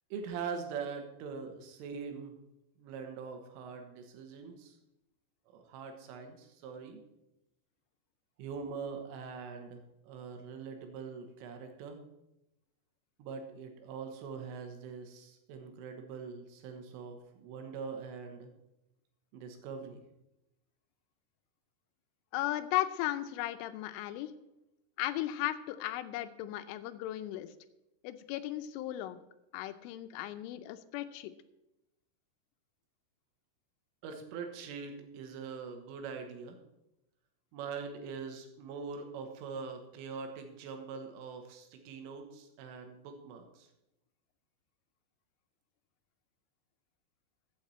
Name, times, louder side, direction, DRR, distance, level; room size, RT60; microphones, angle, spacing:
voice 1, 0.1-2.4 2.8-4.8 5.5-7.0 8.4-12.0 13.2-18.5 19.3-20.0 34.0-36.6 37.5-43.7, right 5 dB, 90° right, 5 dB, 3.9 m, -43 dB
voice 2, 22.3-24.3 25.0-27.5 28.0-29.2 29.5-31.3, left 14 dB, 90° left, 12 dB, 3.2 m, -36 dB
14.5 x 8.5 x 4.3 m, 0.90 s
omnidirectional pair, 5.6 m